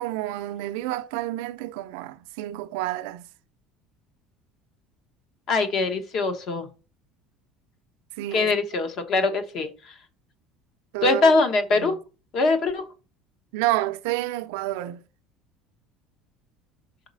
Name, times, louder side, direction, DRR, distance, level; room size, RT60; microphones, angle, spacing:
voice 1, 0.0-3.3 8.2-8.5 10.9-11.4 11.7-12.0 13.5-15.0, right 16 dB, 85° right, 0.5 m, -29 dB
voice 2, 5.5-6.7 8.3-9.9 11.0-12.0 12.3-12.9, left 3 dB, 45° left, 1.1 m, -22 dB
5.5 x 4.1 x 5.4 m
cardioid pair, 155°, 0 cm